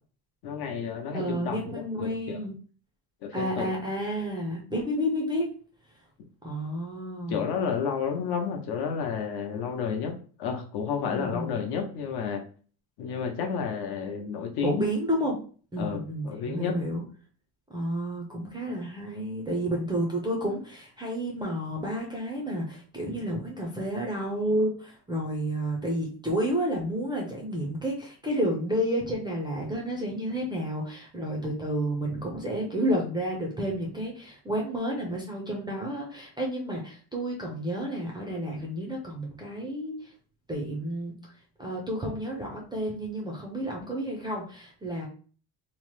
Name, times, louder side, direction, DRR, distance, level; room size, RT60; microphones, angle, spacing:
voice 1, 0.4-2.4 3.2-3.7 7.3-10.1 10.4-12.4 13.0-14.9 15.8-16.7, left 6 dB, 70° left, 3 dB, 0.8 m, -31 dB
voice 2, 1.1-2.6 3.3-5.5 6.4-7.5 11.0-11.5 14.6-15.4 15.7-17.0 17.7-39.9 40.5-41.1 41.6-45.1, equal, 10° right, -1 dB, 0.3 m, -30 dB
2.9 x 2.0 x 3.1 m, 0.41 s
cardioid pair, 160°, 41 cm